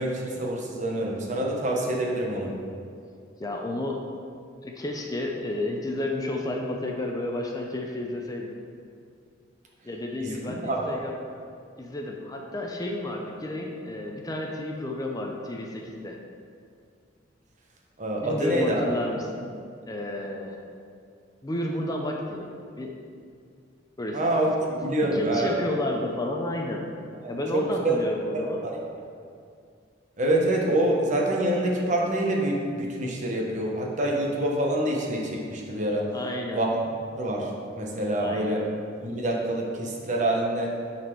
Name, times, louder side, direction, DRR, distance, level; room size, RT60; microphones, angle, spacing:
voice 1, 0.0-2.5 10.2-10.9 18.0-18.8 24.1-24.5 24.8-25.6 27.2-28.0 28.6-28.8 30.2-36.1 36.5-36.8 37.1-37.5 37.8-38.7 39.0-40.7, right 1 dB, 40° right, -1 dB, 1.1 m, -26 dB
voice 2, 3.4-4.1 4.6-8.5 9.8-11.1 11.8-16.2 18.2-19.4 19.9-20.6 21.4-22.5 22.8-23.0 24.0-24.2 25.0-26.9 27.3-28.6 36.1-36.6 38.2-38.6, left 1 dB, 20° left, 1 dB, 0.6 m, -31 dB
9.4 x 4.2 x 4.6 m, 2.3 s
head